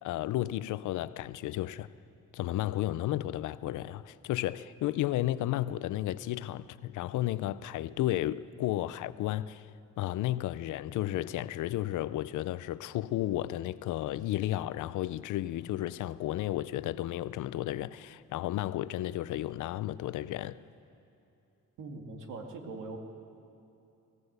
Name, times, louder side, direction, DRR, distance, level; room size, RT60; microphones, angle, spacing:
voice 1, 0.0-1.9 2.3-9.7 10.0-20.6, left 14 dB, 80° left, 0.6 m, -33 dB
voice 2, 21.8-23.0, right 3 dB, 85° right, 2.4 m, -41 dB
21.5 x 17.5 x 8.1 m
cardioid pair, 90°, 30 cm